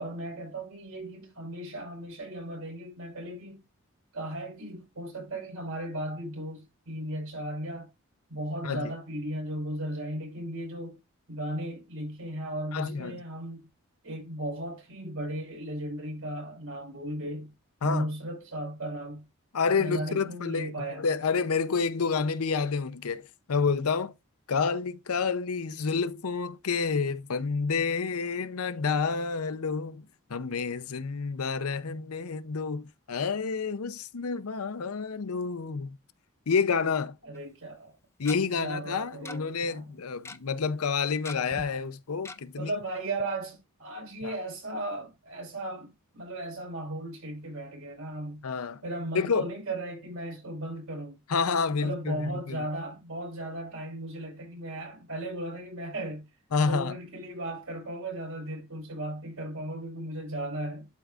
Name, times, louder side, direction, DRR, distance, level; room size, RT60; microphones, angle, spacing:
voice 1, 0.0-3.6 4.1-7.9 8.3-11.0 11.3-13.7 14.0-17.5 17.8-19.2 19.7-21.1 37.2-37.9 38.6-39.9 42.6-48.4 48.8-51.2 51.8-56.2 56.6-60.9, right 1 dB, 75° right, 4.8 m, -36 dB
voice 2, 12.7-13.2 17.8-18.1 19.5-24.1 24.5-30.0 30.3-36.0 36.5-37.2 38.2-42.7 44.2-44.4 48.4-48.8 49.1-49.5 51.3-52.6 56.5-57.0, left 5 dB, 85° left, 0.7 m, -29 dB
Tick-tock, 37.4-37.5 38.3-38.4 39.3-39.4 39.6-39.7 40.0-40.4 41.3-41.7 42.3-42.4 42.8-42.9 43.2-43.3, left 3 dB, 10° left, 0.4 m, -40 dB
11.5 x 4.6 x 2.5 m
head